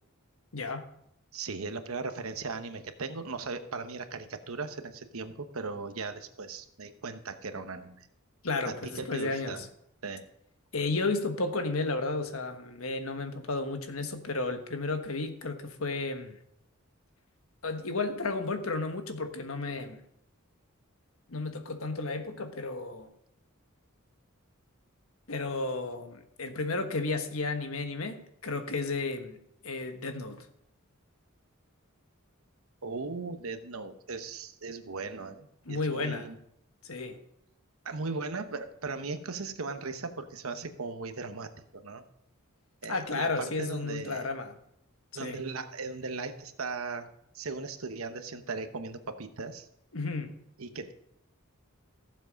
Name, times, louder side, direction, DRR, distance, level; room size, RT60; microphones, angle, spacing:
voice 1, 0.5-0.8 8.4-9.7 10.7-16.3 17.6-20.0 21.3-23.1 25.3-29.4 29.6-30.4 35.7-36.3 36.8-37.2 42.9-44.5 45.2-45.4 49.9-50.3, left 3 dB, 75° left, 7 dB, 1.3 m, -33 dB
voice 2, 1.3-8.1 8.6-9.7 10.0-10.2 32.8-36.4 37.8-42.1 42.8-44.3 45.1-47.1 47.3-49.7 50.6-50.9, right 4 dB, 75° right, 9 dB, 1.0 m, -38 dB
15.0 x 7.5 x 5.2 m, 0.77 s
head